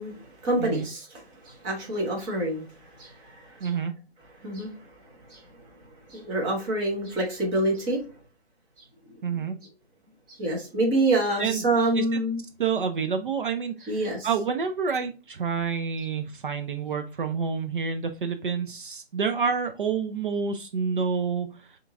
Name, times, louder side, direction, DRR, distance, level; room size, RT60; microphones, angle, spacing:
voice 1, 0.0-3.7 4.4-4.7 5.3-5.4 6.1-8.0 10.3-12.4 13.9-14.3, right 2 dB, 10° right, -1 dB, 0.8 m, -27 dB
voice 2, 3.6-3.9 9.2-9.6 11.4-11.7 11.9-12.2 12.6-21.8, right 6 dB, 55° right, 7 dB, 0.6 m, -28 dB
5.6 x 3.0 x 2.4 m, 0.32 s
hypercardioid pair, 155°, 32 cm